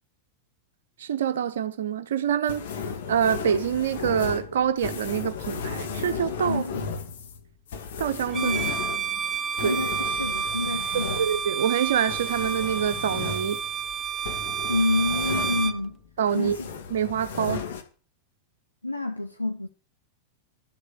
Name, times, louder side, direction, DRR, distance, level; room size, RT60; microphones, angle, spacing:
voice 1, 1.0-2.7 3.1-6.7 8.0-8.5 9.6-9.8 11.2-13.6 16.2-16.6 16.9-17.6, right 8 dB, 60° right, 0.9 m, -26 dB
sound 1, 2.5-16.0 16.2-17.8, left 6 dB, 60° left, 2.1 m, -35 dB
voice 2, 6.4-6.9 8.3-8.7 9.6-11.2 14.7-16.0 16.3-16.7 18.8-19.7, left 2 dB, 85° left, 0.9 m, -28 dB
Bowed string instrument, 8.3-15.8, right 7 dB, 20° right, 0.8 m, -30 dB
12.5 x 6.7 x 7.4 m
figure-of-eight pair, 90°, 0 cm